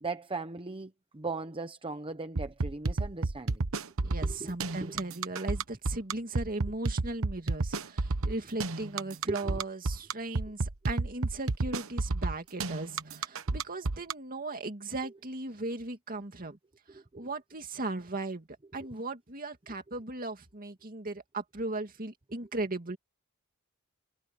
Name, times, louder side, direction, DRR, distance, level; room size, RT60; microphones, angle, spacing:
voice 1, 0.0-3.6 4.0-4.9 9.3-9.6 16.9-17.3, right 3 dB, 25° right, 0.9 m, -39 dB
sound 1, 2.4-14.1, right 3 dB, 65° right, 1.1 m, -30 dB
voice 2, 4.0-16.6 16.9-18.5 18.7-23.0, right 2 dB, 40° right, 2.4 m, -37 dB
head